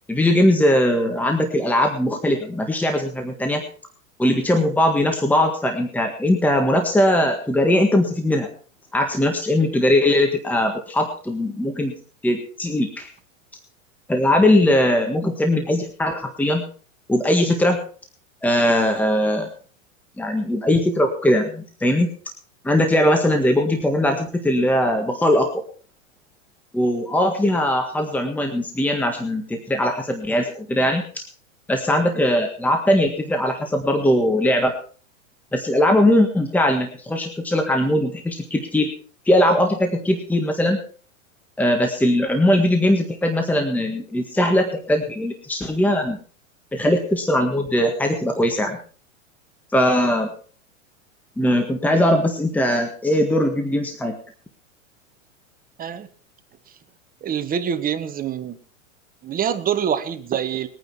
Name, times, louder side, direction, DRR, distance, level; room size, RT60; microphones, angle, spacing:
voice 1, 0.1-3.6 4.2-8.5 8.9-11.9 12.2-13.1 14.1-16.6 17.1-17.8 18.4-19.5 20.2-22.1 22.6-25.5 26.7-31.2 31.7-34.7 35.5-38.9 39.2-40.8 41.6-46.2 46.7-48.8 49.7-50.3 51.4-54.1, left 1 dB, 5° left, 4 dB, 1.6 m, -20 dB
voice 2, 57.2-58.6 59.2-60.7, right 8 dB, 20° right, 10 dB, 1.1 m, -25 dB
21.5 x 9.3 x 4.5 m, 0.41 s
hypercardioid pair, 130°, 40 cm